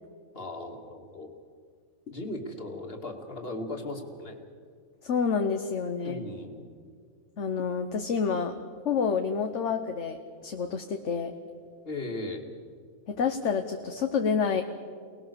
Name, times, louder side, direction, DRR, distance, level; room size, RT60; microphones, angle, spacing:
voice 1, 0.3-1.3 2.1-4.4 6.0-6.7 11.8-12.5, left 2 dB, 45° left, 3 dB, 2.6 m, -37 dB
voice 2, 5.0-6.2 7.4-8.5 8.8-11.3 13.1-14.6, left 6 dB, 60° left, 6 dB, 1.4 m, -28 dB
29.0 x 19.5 x 7.0 m, 2.1 s
omnidirectional pair, 1.5 m